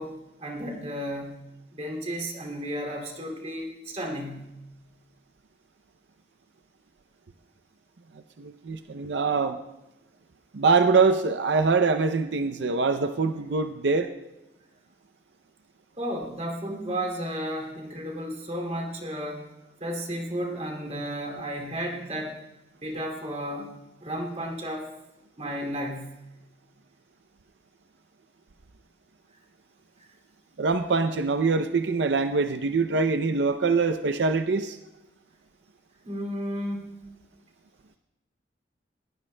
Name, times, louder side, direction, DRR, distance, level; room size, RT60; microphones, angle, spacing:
voice 1, 0.0-1.5 1.7-4.6 16.0-19.5 19.8-22.4 22.8-23.7 24.0-25.0 25.4-26.2 30.0-30.1 36.0-36.9, equal, 35° right, 2 dB, 2.5 m, -33 dB
voice 2, 8.4-9.6 10.5-14.1 30.6-34.8, right 4 dB, 75° right, 9 dB, 0.5 m, -24 dB
20.5 x 18.0 x 2.2 m, 0.96 s
head